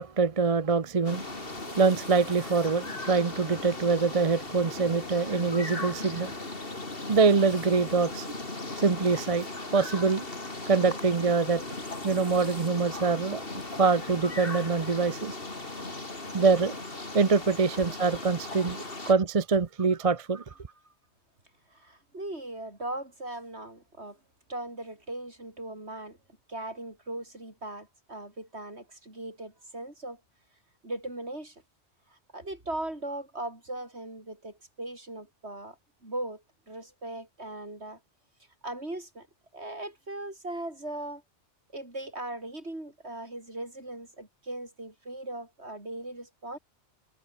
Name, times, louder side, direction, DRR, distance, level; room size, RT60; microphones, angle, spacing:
voice 1, 0.0-6.3 7.1-8.3 8.8-9.5 9.7-10.2 10.7-11.6 12.0-13.4 13.8-15.4 16.3-16.7 17.1-20.4, right 4 dB, 35° right, 0.8 m, -25 dB
sound 1, 1.0-19.1, left 2 dB, 50° left, 3.5 m, -38 dB
voice 2, 21.7-24.2 24.5-26.2 26.5-30.2 30.8-31.6 32.1-35.8 36.0-38.0 38.6-39.3 39.5-41.2 41.7-46.6, right 1 dB, 65° right, 6.5 m, -39 dB
omnidirectional pair, 1.2 m